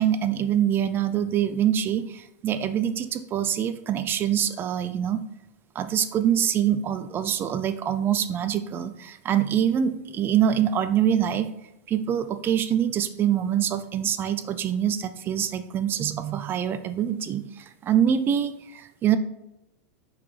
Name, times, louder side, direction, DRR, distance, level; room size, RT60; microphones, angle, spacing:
voice 1, 0.0-5.2 5.7-11.5 11.9-19.2, right 9 dB, 25° right, 11 dB, 0.4 m, -25 dB
5.8 x 5.7 x 3.2 m, 0.87 s
supercardioid pair, 140°, 8 cm